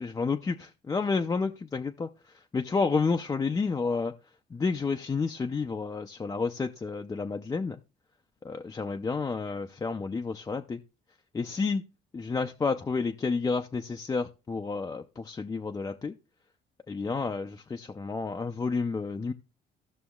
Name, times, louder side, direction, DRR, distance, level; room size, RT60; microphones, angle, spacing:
voice 1, 0.0-2.1 2.5-4.1 4.5-7.8 8.4-10.8 11.3-11.8 12.1-16.1 16.9-19.3, left 4 dB, 20° left, 4 dB, 0.4 m, -30 dB
14.5 x 6.1 x 2.3 m, 0.30 s
cardioid pair, 110°, 17 cm